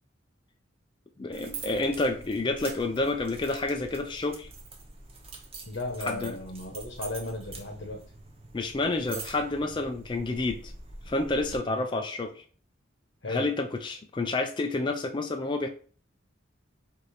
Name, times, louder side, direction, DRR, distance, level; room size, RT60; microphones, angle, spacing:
voice 1, 1.2-4.5 6.0-6.4 8.5-10.7 11.1-12.4 13.3-15.7, left 2 dB, 25° left, 4 dB, 0.4 m, -29 dB
sound 1, 1.3-11.6, right 3 dB, 30° right, 0.8 m, -45 dB
voice 2, 5.7-8.0 11.6-11.8 13.2-13.5, left 2 dB, 55° left, 2 dB, 0.9 m, -35 dB
4.9 x 2.6 x 4.1 m, 0.42 s
head